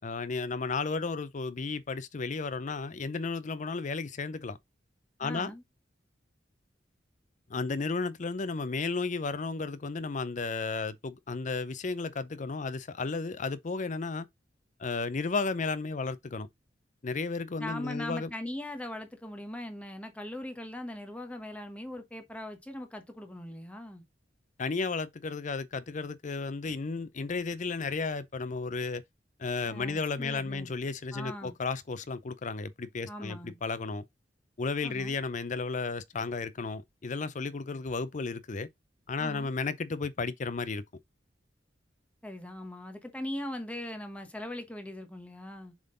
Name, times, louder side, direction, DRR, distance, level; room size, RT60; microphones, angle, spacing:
voice 1, 0.0-4.6 5.2-5.5 7.5-14.3 14.8-16.5 17.0-18.3 24.6-29.0 29.4-34.0 34.6-38.7 39.1-40.8, left 4 dB, 45° left, 0.6 m, -33 dB
voice 2, 5.2-5.6 17.6-24.0 29.7-30.7 31.1-31.5 33.1-33.6 34.8-35.2 39.2-39.5 42.2-45.7, left 1 dB, 5° left, 1.2 m, -40 dB
7.2 x 3.8 x 3.8 m
head